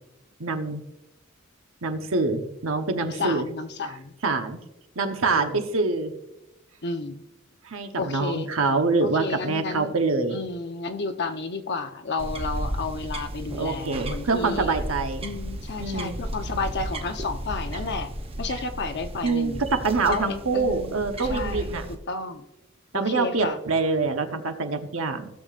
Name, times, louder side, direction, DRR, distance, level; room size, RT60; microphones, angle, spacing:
voice 1, 0.4-0.8 1.8-3.5 4.2-4.6 5.0-6.1 7.6-10.4 13.6-15.2 15.8-16.2 19.2-21.8 22.9-25.3, right 3 dB, 70° right, 6 dB, 1.1 m, -25 dB
voice 2, 3.0-4.1 5.3-5.6 6.8-7.2 8.0-8.5 9.0-10.0 10.3-14.8 15.2-18.1 18.4-19.6 20.1-21.0 21.2-22.4 22.9-23.6, left 3 dB, 55° left, 7 dB, 0.9 m, -32 dB
sound 1, 12.2-22.0, right 1 dB, 30° right, 0.8 m, -34 dB
16.5 x 6.9 x 2.5 m, 0.91 s
head